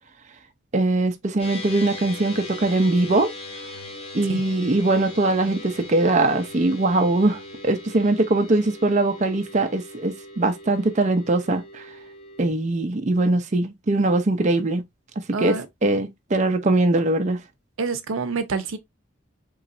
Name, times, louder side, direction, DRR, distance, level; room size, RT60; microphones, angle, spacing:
voice 1, 0.7-3.3 4.1-11.8 12.4-14.8 15.4-15.6 15.8-17.4, right 2 dB, 35° right, 0.5 m, -21 dB
sound 1, 1.4-12.5, left 2 dB, 30° left, 0.8 m, -39 dB
voice 2, 15.3-15.7 17.8-18.8, right 4 dB, 90° right, 0.6 m, -27 dB
3.9 x 3.0 x 2.4 m
head